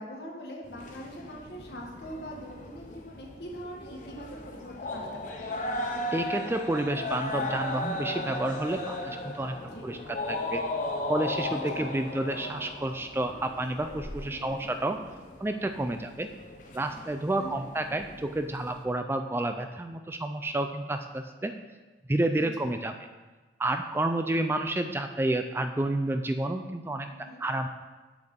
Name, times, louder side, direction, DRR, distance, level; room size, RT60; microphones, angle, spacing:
voice 1, 0.0-5.6 9.7-9.9 11.5-11.9 14.3-14.6 17.4-17.7 22.4-22.7 27.1-27.4, equal, 70° left, -1 dB, 1.4 m, -43 dB
sound 1, 0.6-18.8, left 2 dB, 45° left, 0.8 m, -36 dB
voice 2, 6.1-9.6 9.8-10.6 11.1-15.0 15.4-16.3 16.7-21.5 22.1-22.9 23.6-27.7, right 1 dB, 15° right, 7 dB, 0.3 m, -30 dB
7.7 x 7.2 x 3.7 m, 1.3 s
head